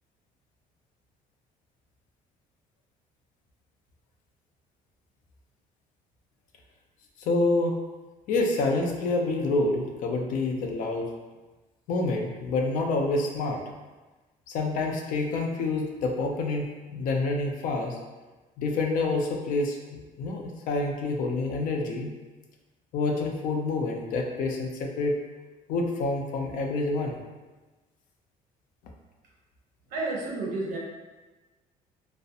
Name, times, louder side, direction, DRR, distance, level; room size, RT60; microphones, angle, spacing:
voice 1, 7.2-7.8 8.3-11.1 11.9-13.6 14.5-18.0 18.6-22.1 22.9-25.1 25.7-27.2, left 3 dB, 65° left, 1 dB, 0.4 m, -27 dB
voice 2, 29.9-30.8, right 2 dB, 70° right, -2 dB, 0.6 m, -30 dB
2.4 x 2.0 x 2.7 m, 1.2 s
cardioid pair, 175°, 15 cm